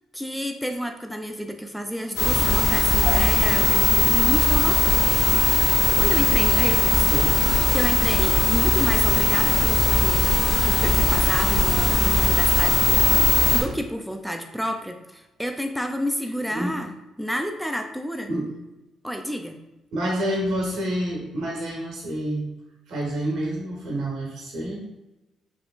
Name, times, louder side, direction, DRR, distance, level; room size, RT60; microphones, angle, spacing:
voice 1, 0.1-5.0 6.0-7.1 7.7-10.4 10.7-18.3 19.0-19.6, equal, ahead, 5 dB, 0.3 m, -30 dB
sound 1, 2.1-13.6, left 3 dB, 85° left, 1.3 m, -19 dB
voice 2, 19.9-22.5 22.9-24.8, right 1 dB, 80° right, -2 dB, 1.3 m, -28 dB
3.6 x 3.3 x 2.4 m, 0.99 s
cardioid pair, 90°, 0 cm